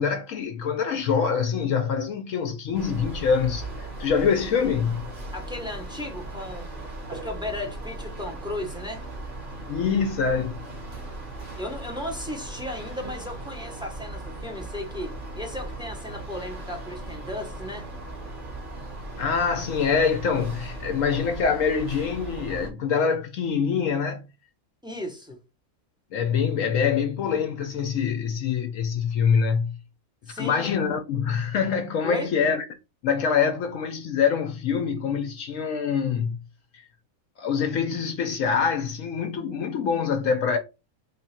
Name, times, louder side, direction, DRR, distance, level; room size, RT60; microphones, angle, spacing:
voice 1, 0.0-5.1 9.7-10.6 19.2-24.2 26.1-29.8 30.3-32.6 33.0-36.4 36.7-36.8 37.4-40.6, left 6 dB, 70° left, 0.9 m, -25 dB
sound 1, 2.7-22.7, right 2 dB, 40° right, 1.2 m, -38 dB
voice 2, 5.3-6.7 7.1-9.1 11.6-17.9 24.8-25.4 30.3-30.7 32.0-32.3, left 1 dB, 5° right, 0.7 m, -35 dB
3.7 x 2.4 x 4.1 m
omnidirectional pair, 1.5 m